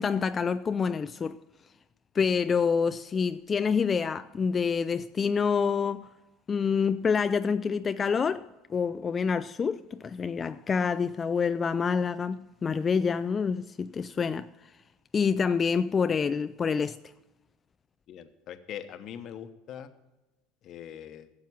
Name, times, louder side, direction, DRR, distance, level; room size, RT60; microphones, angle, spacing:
voice 1, 0.0-1.4 2.1-6.1 6.5-14.7 15.1-17.0, left 6 dB, 25° left, 0.3 m, -27 dB
voice 2, 18.1-19.9 20.6-21.3, left 9 dB, 50° left, 1.0 m, -42 dB
12.5 x 7.4 x 7.2 m
supercardioid pair, 115°, 0 cm